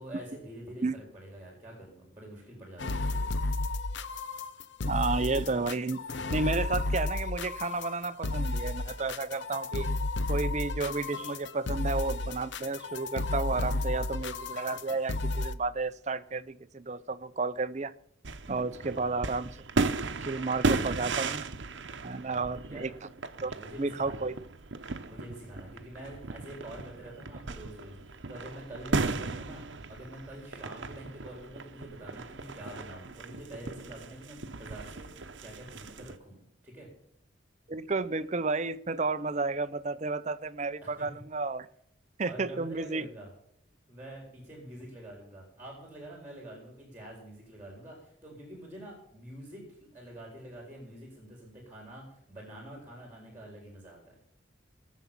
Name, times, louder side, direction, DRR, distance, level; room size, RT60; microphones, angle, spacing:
voice 1, 0.0-3.1 13.7-13.8 18.8-19.3 22.2-22.9 23.5-24.3 25.0-36.9 40.8-41.1 42.2-43.3 43.9-54.1, right 1 dB, 10° right, 4.0 m, -46 dB
sound 1, 2.8-15.5, left 2 dB, 65° left, 0.8 m, -32 dB
voice 2, 4.8-6.0 6.3-9.9 10.3-17.9 18.5-19.6 20.2-21.4 22.0-22.9 23.4-23.5 23.8-24.4 37.7-41.7 42.2-43.1, right 3 dB, 35° right, 0.6 m, -32 dB
sound 2, 18.2-36.2, right 3 dB, 65° right, 0.9 m, -36 dB
18.5 x 7.3 x 7.3 m
head